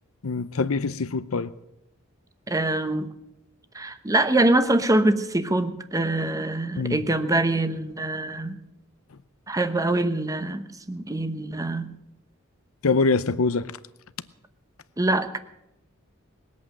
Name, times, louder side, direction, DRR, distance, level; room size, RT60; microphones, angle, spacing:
voice 1, 0.2-1.5 6.8-7.0 12.8-13.7, left 4 dB, 80° left, 0.7 m, -24 dB
voice 2, 2.5-3.1 3.7-8.6 9.5-11.8 15.0-15.4, right 2 dB, 15° right, 0.9 m, -24 dB
20.5 x 8.5 x 7.5 m
head